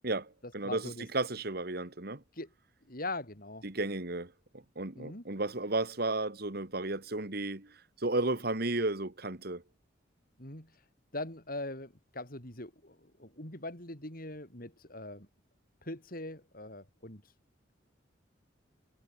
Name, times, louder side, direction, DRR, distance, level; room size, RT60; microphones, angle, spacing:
voice 1, 0.0-2.2 3.6-9.6, right 2 dB, 55° right, 2.1 m, -34 dB
voice 2, 0.6-1.0 2.4-2.5 2.9-3.6 4.9-5.2 10.4-10.7 11.1-15.3 15.9-17.2, left 2 dB, 50° left, 7.6 m, -41 dB
head